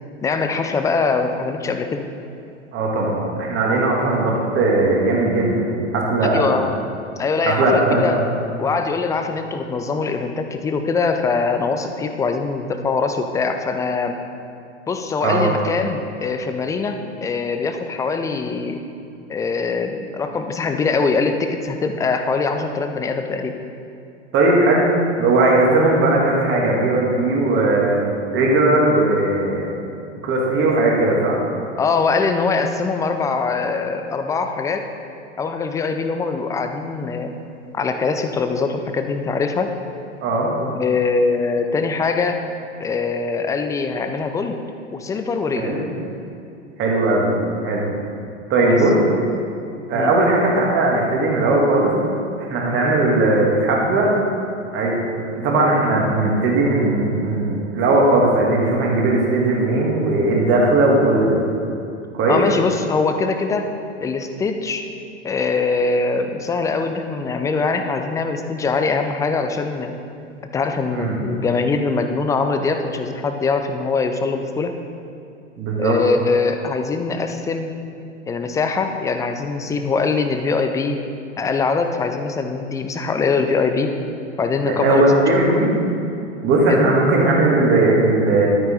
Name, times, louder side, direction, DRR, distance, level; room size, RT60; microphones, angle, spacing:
voice 1, 0.2-2.1 6.3-6.7 7.2-8.2 8.6-14.2 14.9-18.8 19.3-23.5 31.8-34.9 35.4-37.3 37.7-39.7 40.6-42.4 42.8-44.6 44.9-45.8 48.6-48.8 49.9-50.1 62.3-63.7 64.0-64.8 65.2-69.9 70.5-74.7 75.8-77.7 78.3-81.0 81.4-83.9 84.4-85.7 86.7-87.0, left 4 dB, 10° left, 6 dB, 0.5 m, -22 dB
voice 2, 2.7-6.5 7.5-8.2 15.2-15.4 24.3-24.8 25.2-28.0 28.3-29.7 30.2-31.4 40.2-40.5 45.6-45.8 46.8-47.3 47.6-47.9 48.5-48.9 49.9-51.9 52.4-54.1 54.7-55.1 55.4-61.4 62.1-62.4 71.0-71.2 75.6-76.0 84.6-85.7 86.4-88.5, right 2 dB, 30° right, -2 dB, 2.5 m, -18 dB
12.0 x 9.1 x 3.9 m, 2.6 s
figure-of-eight pair, 95°, 37 cm